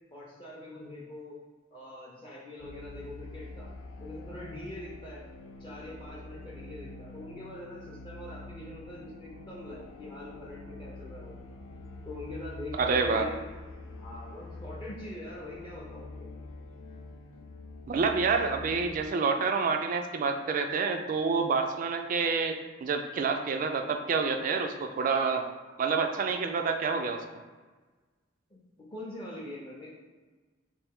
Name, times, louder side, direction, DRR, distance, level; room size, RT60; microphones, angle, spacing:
voice 1, 0.1-1.4 1.7-3.7 4.0-5.2 5.6-11.4 12.0-13.4 14.0-16.3 28.5-28.6 28.9-29.9, left 1 dB, 25° left, -5 dB, 0.5 m, -43 dB
sound 1, 2.6-19.1, left 2 dB, 85° left, 0.4 m, -45 dB
voice 2, 12.8-13.3 17.9-25.4 25.8-27.2, right 4 dB, 45° right, 5 dB, 0.3 m, -28 dB
3.3 x 2.5 x 3.5 m, 1.3 s
head